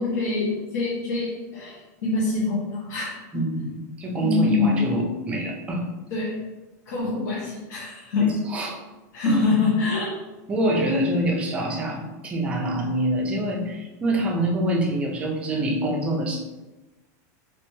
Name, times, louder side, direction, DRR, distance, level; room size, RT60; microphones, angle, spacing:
voice 1, 0.0-3.5 4.2-5.0 6.1-6.3 6.9-8.3 9.1-10.2, left 3 dB, 70° left, -6 dB, 0.9 m, -25 dB
voice 2, 3.3-5.9 8.2-8.8 9.2-9.5 10.5-16.4, right 1 dB, 10° right, 0 dB, 0.4 m, -25 dB
3.3 x 2.9 x 2.9 m, 1.1 s
supercardioid pair, 180°, 10 cm